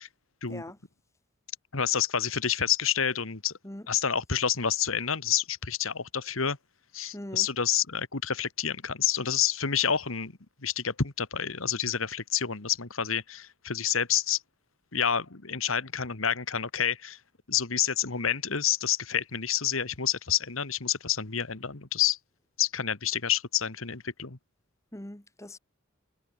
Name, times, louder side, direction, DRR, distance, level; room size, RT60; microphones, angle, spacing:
voice 1, 1.7-3.5 3.9-6.6 6.9-10.3 10.6-14.4 14.9-17.2 17.5-22.2 22.6-24.4, left 8 dB, 85° left, 1.9 m, -28 dB
voice 2, 7.1-7.5 24.9-25.6, left 1 dB, 15° left, 1.4 m, -41 dB
head